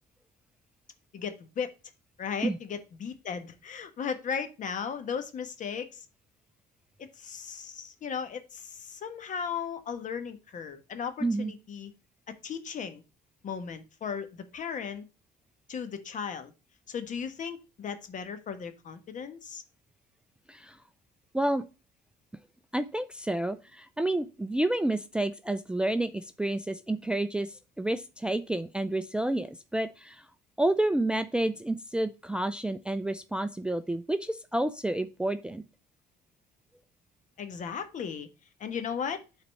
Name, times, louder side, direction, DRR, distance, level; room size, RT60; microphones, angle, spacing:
voice 1, 1.1-1.7 2.2-6.0 7.0-11.9 12.3-13.0 13.4-14.3 14.5-15.0 15.7-16.5 16.9-19.6 37.4-38.3 38.6-39.2, left 6 dB, 50° left, 9 dB, 1.3 m, -36 dB
voice 2, 11.2-11.5 20.5-20.8 21.3-21.6 22.7-30.3 30.6-35.6, right 1 dB, 5° right, 11 dB, 0.4 m, -29 dB
8.7 x 4.1 x 5.4 m, 0.31 s
cardioid pair, 110°, 17 cm